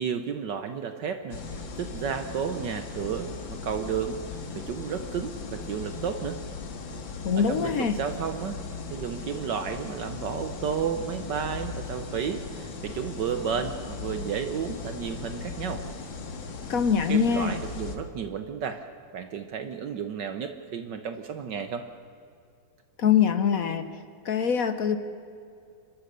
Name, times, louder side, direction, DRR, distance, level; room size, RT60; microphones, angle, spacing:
voice 1, 0.0-4.2 4.5-6.4 7.3-8.6 8.9-15.8 17.1-18.9 19.1-21.8, right 7 dB, 65° right, 8 dB, 1.5 m, -32 dB
sound 1, 1.3-18.0, left 4 dB, 75° left, 2.3 m, -38 dB
voice 2, 7.2-8.0 16.7-17.6 23.0-23.8 24.2-25.0, left 7 dB, 55° left, 10 dB, 1.1 m, -23 dB
29.5 x 13.5 x 6.7 m, 2.5 s
omnidirectional pair, 2.1 m